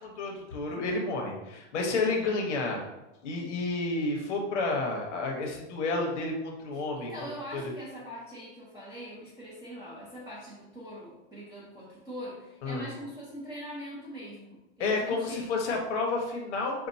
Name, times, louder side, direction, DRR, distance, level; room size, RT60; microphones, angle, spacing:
voice 1, 0.0-2.8 3.2-7.1 7.5-7.7 12.6-12.8 14.8-16.9, left 3 dB, 90° left, 0 dB, 1.3 m, -30 dB
voice 2, 6.7-15.6, equal, 10° right, -9 dB, 1.2 m, -42 dB
6.6 x 2.6 x 2.8 m, 0.97 s
supercardioid pair, 140°, 34 cm